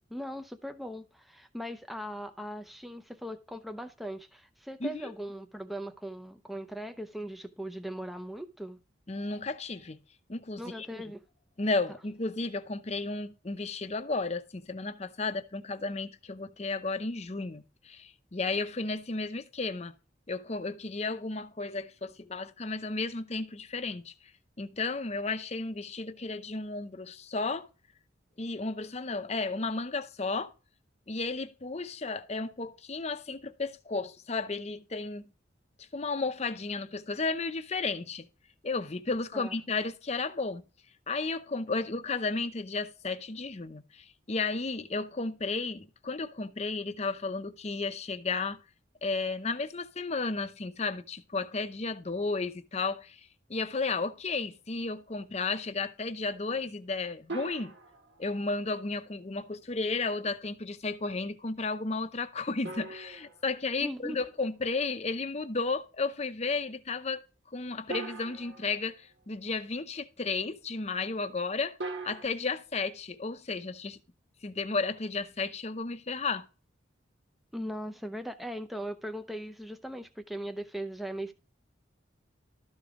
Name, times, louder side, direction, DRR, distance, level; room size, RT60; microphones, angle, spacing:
voice 1, 0.1-8.8 10.6-11.2 39.3-39.5 63.8-64.2 77.5-81.3, equal, ahead, 0.6 m, -39 dB
voice 2, 9.1-10.0 10.3-10.9 11.6-19.9 20.3-24.1 24.6-27.7 28.4-30.5 31.1-35.3 35.9-38.3 38.6-40.6 41.1-48.6 49.0-57.7 58.2-67.2 67.5-71.8 72.0-74.0 74.4-76.5, left 3 dB, 35° left, 0.7 m, -33 dB
sound 1, 57.3-58.4 62.6-64.2 67.9-69.1 71.8-72.3, right 3 dB, 70° right, 1.6 m, -41 dB
12.5 x 5.1 x 3.7 m
head